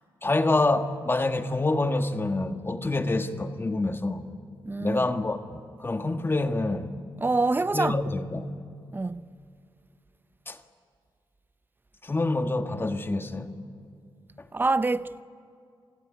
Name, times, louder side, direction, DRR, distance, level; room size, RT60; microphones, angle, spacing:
voice 1, 0.2-4.2 4.8-6.9 7.7-8.5 10.5-10.6 12.0-13.5, left 2 dB, 25° left, 1.6 m, -27 dB
voice 2, 4.7-5.1 7.2-8.0 8.9-9.3 14.5-15.2, right 3 dB, 20° right, 0.7 m, -26 dB
27.5 x 17.0 x 9.9 m
cardioid pair, 75°, 9 cm